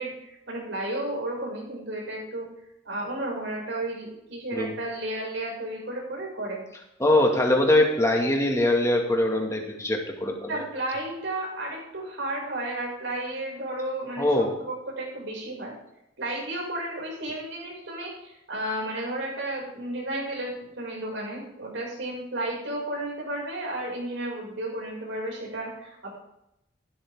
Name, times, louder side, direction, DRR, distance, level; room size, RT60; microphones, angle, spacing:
voice 1, 0.0-2.5 2.8-6.6 10.5-15.7 16.2-26.2, right 1 dB, 70° right, -2 dB, 6.3 m, -33 dB
voice 2, 7.0-10.6 14.2-14.5, left 1 dB, 15° left, 1 dB, 2.1 m, -22 dB
16.0 x 12.0 x 3.7 m, 0.83 s
head